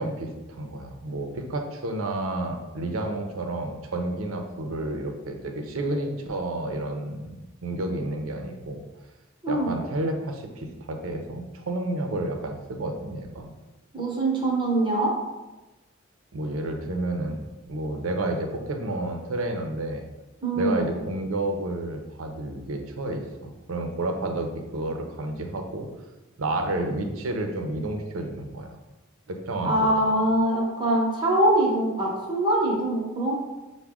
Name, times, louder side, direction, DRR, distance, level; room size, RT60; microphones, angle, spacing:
voice 1, 0.0-7.4 7.6-8.8 9.5-13.5 16.3-20.0 20.6-25.9 26.4-28.8 29.3-29.9, right 2 dB, 85° right, 4 dB, 0.6 m, -30 dB
voice 2, 13.9-15.1 20.4-20.8 29.6-33.3, right 1 dB, 25° right, -3 dB, 0.8 m, -23 dB
5.8 x 2.2 x 3.5 m, 1.1 s
head